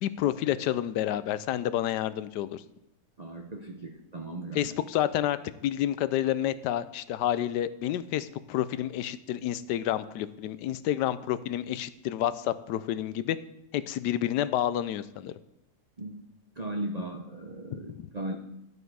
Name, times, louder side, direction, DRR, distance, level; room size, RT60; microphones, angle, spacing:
voice 1, 0.0-2.6 4.5-5.4 5.6-13.4 13.7-15.3 17.9-18.0, left 12 dB, 80° left, 15 dB, 1.2 m, -29 dB
voice 2, 3.2-4.8 16.0-16.3 16.6-18.4, right 1 dB, 40° right, 1 dB, 0.6 m, -37 dB
11.5 x 7.9 x 4.7 m, 0.84 s
omnidirectional pair, 1.8 m